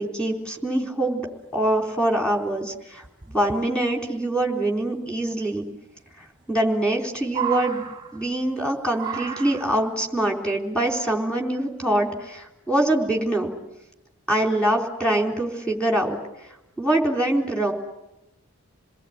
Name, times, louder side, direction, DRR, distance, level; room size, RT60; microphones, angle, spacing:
voice 1, 0.0-5.7 6.2-7.9 8.1-13.5 14.3-16.2 16.8-17.7, right 1 dB, 5° left, 1 dB, 3.8 m, -24 dB
sound 1, 2.0-2.1 2.3-2.4 3.0-3.6 5.2-5.3 6.5-7.0 7.2-8.5 9.0-10.0 11.0-11.1, right 8 dB, 20° right, 1.2 m, -33 dB
28.0 x 20.0 x 9.5 m, 0.93 s
head